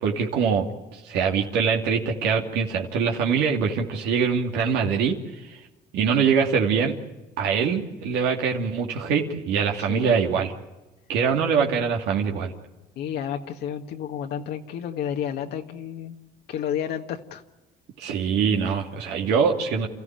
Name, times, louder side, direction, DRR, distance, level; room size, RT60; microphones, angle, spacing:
voice 1, 0.0-5.1 5.4-5.6 5.9-6.9 7.4-10.5 11.1-12.5 18.0-19.9, right 6 dB, 90° right, 1 dB, 2.7 m, -23 dB
voice 2, 9.8-10.3 12.9-16.2 16.5-17.4, left 9 dB, 75° left, 3 dB, 1.7 m, -31 dB
29.5 x 14.5 x 9.0 m, 1.1 s
cardioid pair, 110°, 17 cm